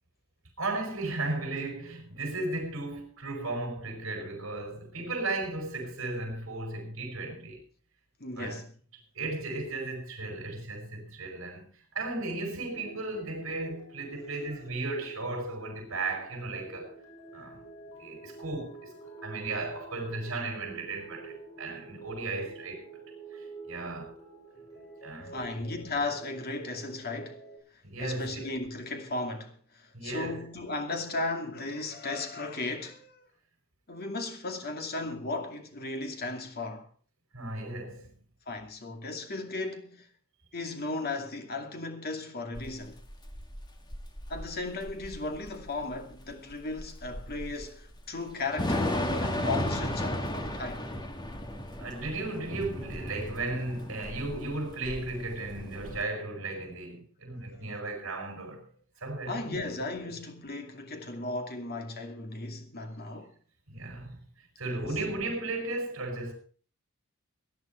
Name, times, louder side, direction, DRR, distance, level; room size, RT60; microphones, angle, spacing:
voice 1, 0.6-7.6 8.4-8.6 9.1-16.9 17.3-17.6 18.0-22.8 23.3-24.1 25.0-25.3 27.8-28.5 29.9-30.4 37.3-38.2 51.8-58.7 59.0-59.6 60.0-60.1 63.7-64.2 64.6-66.3, right 2 dB, 65° right, 6.2 m, -35 dB
voice 2, 8.2-8.7 25.3-27.4 28.0-33.2 33.9-36.9 38.5-40.1 40.5-43.0 44.3-50.8 59.3-63.4 64.6-64.9, left 2 dB, 45° left, 2.5 m, -36 dB
sound 1, 12.7-27.6, right 3 dB, 80° left, 7.5 m, -49 dB
Thunder / Rain, 42.5-56.0, left 1 dB, 20° left, 1.8 m, -35 dB
19.0 x 11.0 x 4.5 m
head